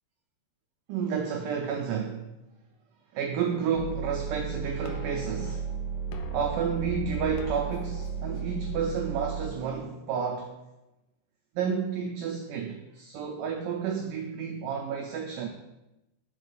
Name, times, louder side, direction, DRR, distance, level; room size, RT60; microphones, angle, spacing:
voice 1, 0.9-2.4 3.1-10.5 11.6-15.5, right 6 dB, 85° right, 3 dB, 1.9 m, -31 dB
sound 1, 3.7-9.5, right 5 dB, 75° left, 2.3 m, -34 dB
5.3 x 5.1 x 6.5 m, 0.96 s
omnidirectional pair, 4.5 m